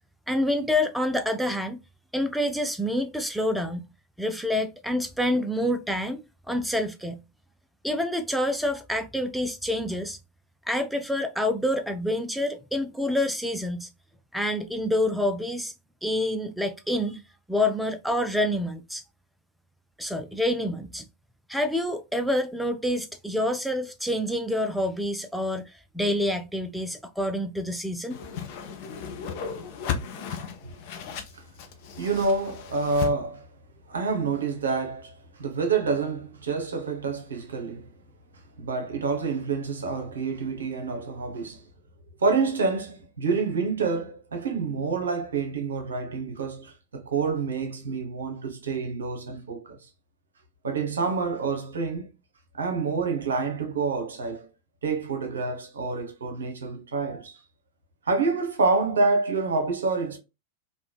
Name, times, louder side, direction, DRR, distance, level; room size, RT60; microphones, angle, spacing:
voice 1, 0.3-1.8 2.1-3.9 4.2-7.2 7.8-10.2 10.7-13.9 14.3-15.7 16.0-17.2 17.5-19.0 20.0-21.0 21.5-28.2, left 1 dB, ahead, 0.3 m, -27 dB
Whoosh swoosh swish, 28.1-33.1, left 6 dB, 45° left, 0.6 m, -35 dB
voice 2, 32.0-33.5 33.9-37.9 38.6-41.6 42.2-49.8 50.6-52.1 52.5-54.5 54.8-57.4 58.1-60.2, right 4 dB, 70° right, 0.7 m, -27 dB
3.3 x 2.1 x 2.2 m
figure-of-eight pair, 90°, 0 cm